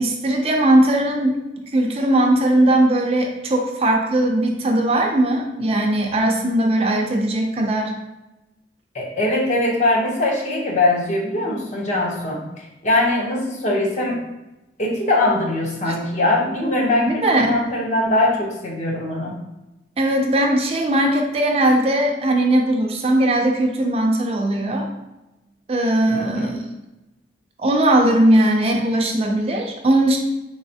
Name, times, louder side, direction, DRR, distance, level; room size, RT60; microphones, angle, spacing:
voice 1, 0.0-1.4 1.7-7.9 15.9-16.0 17.1-17.6 20.0-24.9 25.7-26.6 27.6-30.2, right 1 dB, 35° right, 2 dB, 0.4 m, -19 dB
voice 2, 8.9-14.2 14.8-19.4 26.1-26.6, left 2 dB, 40° left, -2 dB, 0.7 m, -21 dB
4.1 x 3.1 x 2.7 m, 0.99 s
head